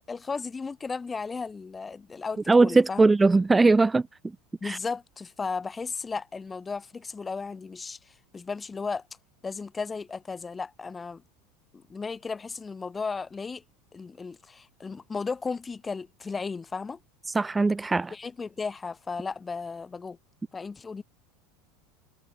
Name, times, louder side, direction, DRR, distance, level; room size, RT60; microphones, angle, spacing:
voice 1, 0.1-3.0 4.6-9.0 9.4-11.2 11.9-13.6 13.9-17.0 18.1-20.2 20.5-21.0, left 4 dB, 10° left, 3.4 m, -35 dB
voice 2, 2.5-4.1 4.6-4.8 17.3-18.1, right 3 dB, 10° right, 2.6 m, -20 dB
supercardioid pair, 175°, 0 cm